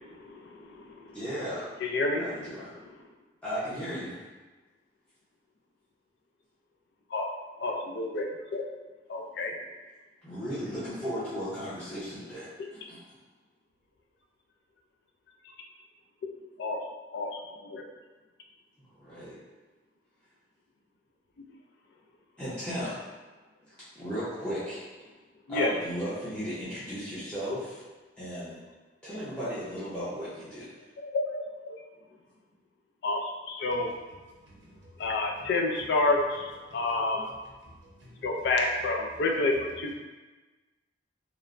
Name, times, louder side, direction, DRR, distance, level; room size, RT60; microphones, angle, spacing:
voice 1, 0.0-1.2 1.8-2.3 7.1-7.3 7.6-8.6 9.1-9.5 16.6-16.8 17.1-17.8 25.5-25.7 31.0-31.8 33.0-33.9 35.0-37.3 38.2-39.9, left 2 dB, 65° left, 1 dB, 0.4 m, -29 dB
voice 2, 1.1-1.7 2.2-2.7 3.4-4.2 10.2-13.1 18.9-19.4 22.4-23.0 23.7-24.8 25.5-27.8 28.2-28.6 29.0-30.7, equal, 5° left, -14 dB, 0.6 m, -35 dB
voice 3, 34.3-35.1 36.7-37.1 37.6-38.2, equal, 75° right, -4 dB, 0.6 m, -54 dB
3.0 x 2.1 x 2.4 m, 1.2 s
head